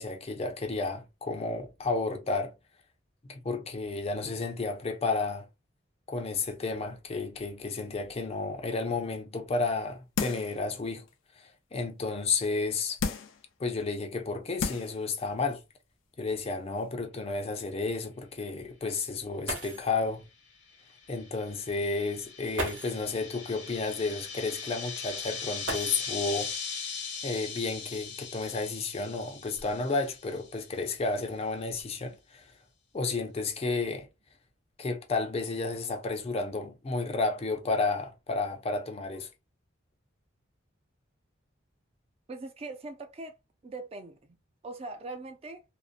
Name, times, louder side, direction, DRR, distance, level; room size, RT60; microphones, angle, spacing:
voice 1, 0.0-2.5 3.3-5.5 6.1-11.1 11.4-13.0 13.6-15.6 16.2-20.2 21.1-26.5 27.2-32.5 32.9-34.1 34.8-39.3, left 3 dB, 30° left, 0.4 m, -32 dB
sound 1, 10.2-10.6 11.1-11.2 13.0-13.4 14.1-14.2 14.6-15.0 15.4-15.5, left 5 dB, 85° left, 0.5 m, -32 dB
sound 2, 16.1-16.2 16.8-16.9 19.1-19.2 19.5-20.0 21.3-21.4 22.5-23.1 25.6-26.4 27.7-27.8 28.6-30.0 30.7-31.1 31.4-31.8, right 2 dB, 70° right, 0.8 m, -39 dB
sound 3, 20.7-30.5, left 5 dB, 65° left, 0.8 m, -39 dB
voice 2, 42.3-43.3 43.6-44.4 44.6-45.6, right 2 dB, 30° right, 0.4 m, -41 dB
2.5 x 2.0 x 2.4 m
head